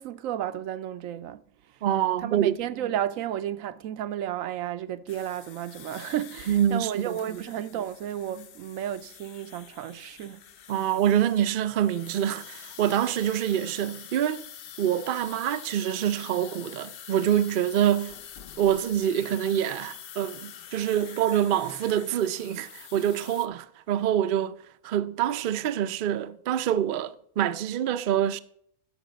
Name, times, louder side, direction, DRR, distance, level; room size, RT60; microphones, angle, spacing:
voice 1, 0.0-1.4 2.2-10.4, right 11 dB, 85° right, 1.0 m, -33 dB
voice 2, 1.8-2.6 6.5-7.4 10.7-14.4 14.8-18.2 18.6-24.5 24.8-28.4, right 10 dB, 60° right, 0.5 m, -26 dB
sound 1, 5.1-23.5, left 9 dB, 60° left, 0.6 m, -46 dB
11.5 x 6.6 x 5.1 m
omnidirectional pair, 1.4 m